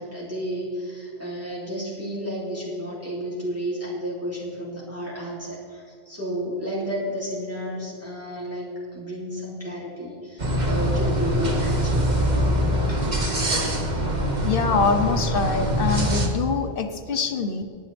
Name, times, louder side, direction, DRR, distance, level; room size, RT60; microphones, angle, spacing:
voice 1, 0.0-12.1, equal, 15° right, -7 dB, 2.9 m, -32 dB
sound 1, 10.4-16.3, equal, 40° right, 1.5 m, -23 dB
voice 2, 14.4-17.6, left 5 dB, 60° left, 8 dB, 1.1 m, -24 dB
18.5 x 10.5 x 3.4 m, 2.4 s
omnidirectional pair, 1.1 m